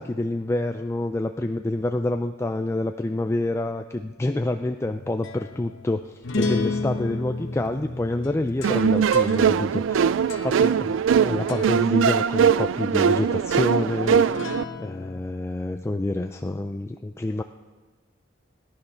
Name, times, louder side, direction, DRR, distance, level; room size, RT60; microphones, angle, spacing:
voice 1, 0.0-10.1 10.4-14.3 14.8-17.4, left 2 dB, 15° left, 6 dB, 0.3 m, -27 dB
sound 1, 4.8-11.2 11.5-11.9 14.2-15.2, left 3 dB, 85° left, 0.9 m, -33 dB
sound 2, 8.6-14.6, right 7 dB, 80° right, 0.3 m, -21 dB
17.5 x 10.5 x 5.6 m, 1.3 s
head